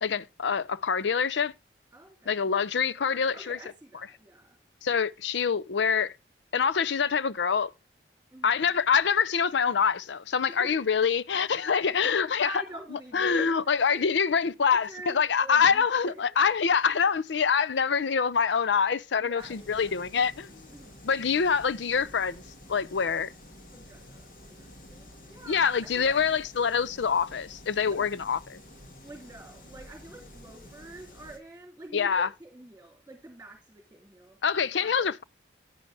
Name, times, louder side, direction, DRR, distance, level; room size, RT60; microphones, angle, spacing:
voice 1, 0.0-1.5 2.3-3.6 4.8-6.1 6.5-7.7 8.4-12.5 13.1-20.6 21.0-22.4 22.7-23.3 25.5-28.6 31.9-32.3 34.4-35.2, left 6 dB, 80° left, 0.5 m, -25 dB
voice 2, 1.9-2.5 3.3-4.6 8.3-8.6 10.5-10.9 11.6-11.7 12.4-14.1 14.7-16.4 16.7-16.8 19.2-20.0 20.7-21.0 23.7-25.6 25.9-26.1 27.9-28.0 29.0-34.4 34.8-35.1, right 2 dB, 10° right, 3.0 m, -47 dB
sound 1, 19.4-31.4, left 1 dB, 45° left, 1.9 m, -50 dB
10.5 x 9.1 x 3.4 m
head